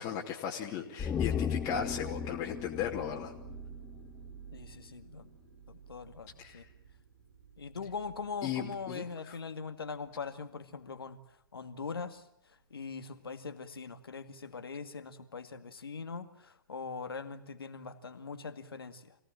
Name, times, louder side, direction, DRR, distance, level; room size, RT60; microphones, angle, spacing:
voice 1, 0.0-3.3 6.4-6.7 8.4-9.4, left 8 dB, 30° left, -2 dB, 2.9 m, -36 dB
sound 1, 1.0-4.4 4.7-4.8, left 7 dB, 15° left, 1.0 m, -36 dB
sound 2, 1.0-10.4 10.8-11.2 11.9-12.2, right 7 dB, 70° right, 4.8 m, -52 dB
voice 2, 4.5-5.3 5.7-6.7 7.6-11.2 11.5-12.2 12.7-19.2, left 5 dB, 80° left, 9 dB, 2.1 m, -41 dB
26.5 x 17.5 x 8.9 m, 0.78 s
hypercardioid pair, 120°, 12 cm